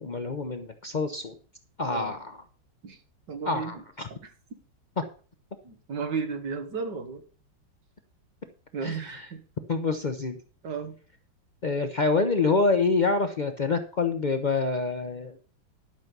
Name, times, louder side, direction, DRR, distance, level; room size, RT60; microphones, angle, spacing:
voice 1, 0.0-1.3 1.8-2.4 3.5-4.1 8.8-9.0 9.7-10.4 11.6-15.4, left 3 dB, 80° left, 6 dB, 0.4 m, -26 dB
voice 2, 3.3-3.8 4.1-4.3 5.6-7.2 8.7-9.4 10.6-11.0, right 5 dB, 65° right, 7 dB, 2.1 m, -34 dB
12.0 x 6.0 x 6.7 m, 0.39 s
omnidirectional pair, 2.1 m